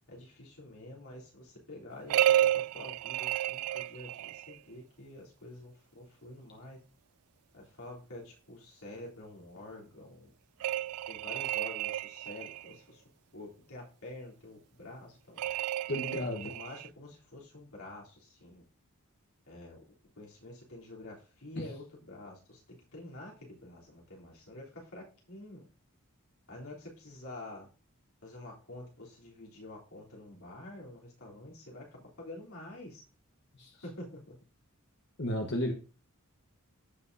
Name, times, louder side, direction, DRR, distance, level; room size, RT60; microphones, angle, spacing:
voice 1, 0.1-6.8 7.5-10.3 11.1-13.0 13.3-15.4 16.2-18.6 19.5-19.8 20.2-22.6 22.9-25.7 26.5-27.7 28.2-33.0 33.8-34.3, left 1 dB, 70° left, -3 dB, 3.4 m, -48 dB
sound 1, 2.1-4.6 10.6-12.7 15.4-16.9, right 12 dB, 75° right, 0.3 m, -31 dB
voice 2, 15.9-16.5 21.6-21.7 33.6-33.7 35.2-35.7, left 1 dB, 50° left, 2 dB, 1.1 m, -33 dB
15.0 x 5.9 x 2.7 m, 0.34 s
head